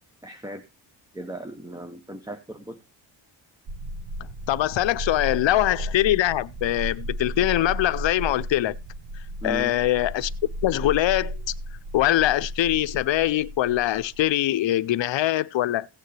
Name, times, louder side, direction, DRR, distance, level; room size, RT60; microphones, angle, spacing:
voice 1, 0.2-0.6 1.1-2.8 9.4-9.7, right 1 dB, 10° right, 0.8 m, -36 dB
sound 1, 3.7-14.3, equal, 55° right, 1.2 m, -34 dB
voice 2, 4.5-8.8 9.4-10.3 10.6-11.4 11.9-15.9, left 14 dB, 75° left, 0.6 m, -23 dB
16.0 x 9.1 x 3.3 m
wide cardioid pair, 150°, 46 cm